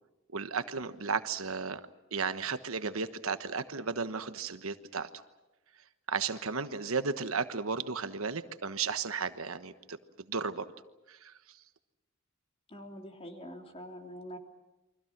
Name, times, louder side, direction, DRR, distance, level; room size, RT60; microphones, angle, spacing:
voice 1, 0.3-1.8 2.1-5.1 6.1-10.0 10.3-10.7 11.1-11.3, right 5 dB, 75° right, 11 dB, 1.3 m, -34 dB
voice 2, 12.7-14.4, equal, 30° left, 3 dB, 3.2 m, -45 dB
29.5 x 24.5 x 6.1 m, 1.0 s
head